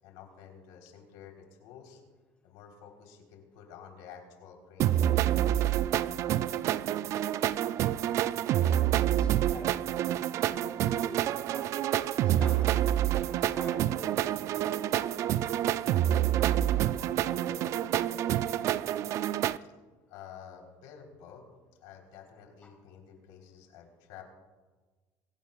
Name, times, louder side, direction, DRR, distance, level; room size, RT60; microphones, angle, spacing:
voice 1, 0.0-2.0 2.4-5.2 19.6-19.7 20.1-21.4 21.8-24.2, left 8 dB, 85° left, 1 dB, 3.7 m, -50 dB
sound 1, 4.8-19.6, right 12 dB, 45° right, 0.3 m, -27 dB
voice 2, 8.9-9.7 10.4-15.6 16.3-18.8, left 2 dB, 15° left, 0 dB, 3.7 m, -49 dB
25.5 x 15.5 x 2.4 m, 1.3 s
cardioid pair, 160°, 7 cm